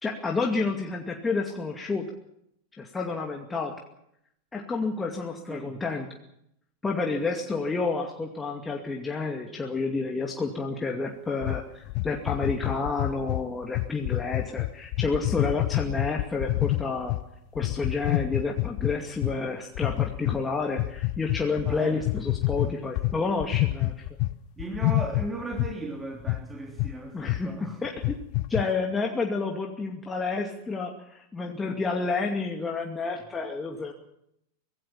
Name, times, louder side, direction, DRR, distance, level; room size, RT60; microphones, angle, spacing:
voice 1, 0.0-2.1 2.8-3.7 4.5-6.1 6.8-17.1 17.5-23.9 27.1-27.5 27.8-28.2 28.5-33.9, left 4 dB, 15° left, 1 dB, 2.3 m, -30 dB
voice 2, 5.5-5.8 21.6-22.3 24.6-27.8, right 1 dB, 15° right, 0 dB, 3.5 m, -36 dB
sound 1, 11.4-17.2 17.6-19.4 19.8-20.4 20.8-24.3 24.6-25.8 26.3-26.4 26.8-27.0 27.3-27.4 27.8-28.6, left 20 dB, 45° left, 0.8 m, -27 dB
24.5 x 18.0 x 7.2 m, 0.77 s
figure-of-eight pair, 90°, 0 cm